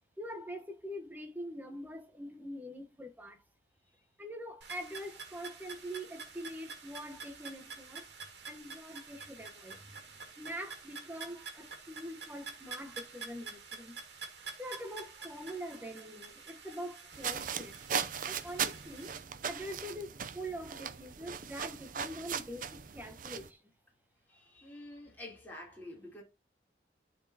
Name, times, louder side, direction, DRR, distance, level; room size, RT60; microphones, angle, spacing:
voice 1, 0.2-3.4 4.2-8.1 8.4-9.9 10.4-14.0 14.6-17.8 18.2-23.6, equal, 10° right, 1.0 m, -44 dB
sound 1, 4.6-19.2, right 5 dB, 65° right, 1.9 m, -48 dB
sound 2, 17.1-23.5, right 7 dB, 45° right, 0.5 m, -38 dB
voice 2, 24.3-26.2, left 1 dB, 10° left, 3.0 m, -48 dB
12.5 x 4.3 x 2.8 m
head